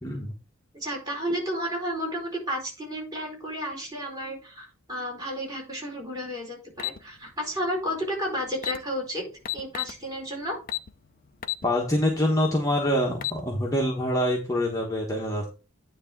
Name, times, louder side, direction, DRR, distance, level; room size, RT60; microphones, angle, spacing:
voice 1, 0.0-0.3 11.6-15.5, left 1 dB, 15° left, -1 dB, 1.2 m, -25 dB
voice 2, 0.7-10.6, equal, 20° right, -3 dB, 4.5 m, -32 dB
sound 1, 6.8-7.0 8.2-8.3 8.5-8.8 9.4-10.0 10.7-10.9 11.4-11.6 12.1-12.2 13.0-13.4, left 13 dB, 45° left, 0.5 m, -30 dB
9.6 x 3.4 x 6.0 m, 0.33 s
head